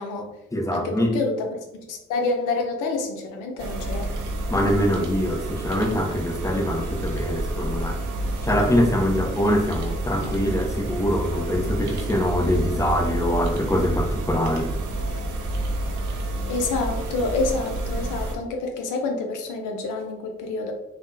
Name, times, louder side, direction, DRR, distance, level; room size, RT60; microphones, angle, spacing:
voice 1, 0.0-0.3 0.7-4.1 16.5-20.7, left 3 dB, 85° left, 3 dB, 0.6 m, -28 dB
voice 2, 0.5-1.2 4.5-8.0 8.4-14.7, left 1 dB, 10° left, 2 dB, 0.7 m, -23 dB
sound 1, 3.6-18.3, right 2 dB, 80° right, 0.6 m, -29 dB
3.5 x 2.2 x 2.6 m, 0.93 s
supercardioid pair, 40°, 30 cm